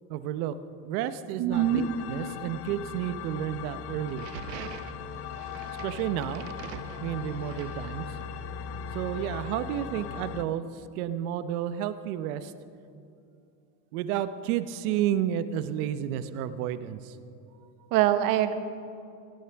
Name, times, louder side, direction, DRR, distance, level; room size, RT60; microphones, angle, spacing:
voice 1, 0.1-0.5 0.8-4.3 5.8-6.5 7.0-8.1 8.9-10.6 11.0-12.5 13.9-17.1, right 10 dB, 65° right, 12 dB, 0.9 m, -31 dB
voice 2, 1.4-1.9 17.9-18.6, right 11 dB, 45° right, 10 dB, 1.0 m, -23 dB
sound 1, 1.5-10.4, left 7 dB, 30° left, 0.5 m, -39 dB
sound 2, 4.1-8.4, right 9 dB, 90° right, 1.1 m, -45 dB
18.0 x 16.5 x 3.5 m, 2.6 s
supercardioid pair, 140°, 47 cm